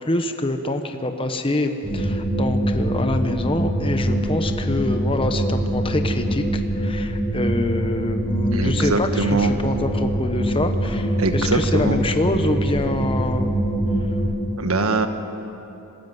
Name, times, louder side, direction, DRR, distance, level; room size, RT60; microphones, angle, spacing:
voice 1, 0.0-13.5, left 1 dB, 25° left, 7 dB, 1.0 m, -25 dB
sound 1, 1.8-14.3, right 1 dB, 5° left, 4.9 m, -23 dB
voice 2, 8.5-9.5 11.2-12.0 14.6-15.1, right 3 dB, 65° right, 7 dB, 1.4 m, -22 dB
26.0 x 13.5 x 9.4 m, 3.0 s
head